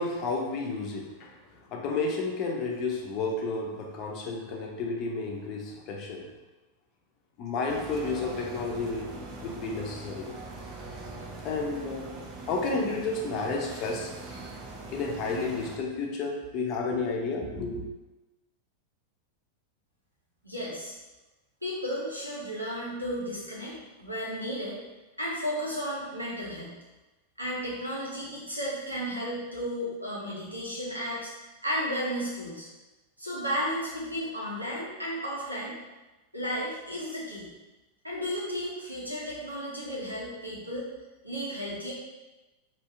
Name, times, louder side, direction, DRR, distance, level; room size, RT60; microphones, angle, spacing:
voice 1, 0.0-1.4 1.7-6.3 7.4-10.3 11.4-12.2 12.5-14.1 14.9-17.8, left 3 dB, 40° left, 0 dB, 0.8 m, -31 dB
sound 1, 7.7-15.8, right 3 dB, 35° right, 0.7 m, -42 dB
voice 2, 20.4-20.9 21.6-24.8 25.2-26.7 27.4-32.7 33.2-35.7 36.3-37.5 38.0-40.8 41.2-41.9, equal, 85° right, -6 dB, 1.3 m, -33 dB
4.5 x 2.9 x 3.3 m, 1.1 s
figure-of-eight pair, 90°, 0 cm